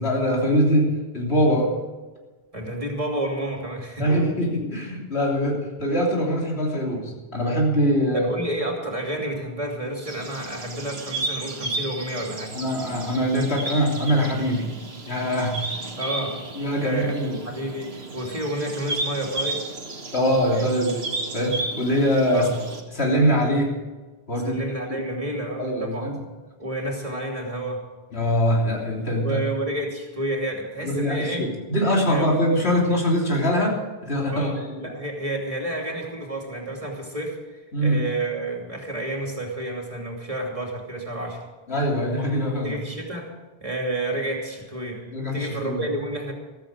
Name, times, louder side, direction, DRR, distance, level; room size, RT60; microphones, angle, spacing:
voice 1, 0.0-1.7 4.0-8.3 12.5-14.7 15.1-15.6 16.6-17.4 20.1-22.5 22.9-23.8 24.3-24.6 24.9-25.0 25.6-26.2 28.1-29.4 30.8-34.8 37.7-38.0 41.7-42.7 45.1-45.9, equal, 85° left, -2 dB, 3.5 m, -23 dB
voice 2, 2.5-4.2 8.1-12.5 16.0-16.4 16.8-19.7 20.5-20.6 22.3-22.5 24.4-26.1 26.6-27.8 29.2-31.5 31.8-32.4 34.3-41.4 42.6-43.3 43.6-46.3, right 1 dB, 35° right, 0 dB, 3.0 m, -30 dB
sound 1, 10.0-22.8, right 2 dB, 80° right, 1.9 m, -33 dB
15.0 x 14.0 x 5.1 m, 1.3 s
omnidirectional pair, 1.1 m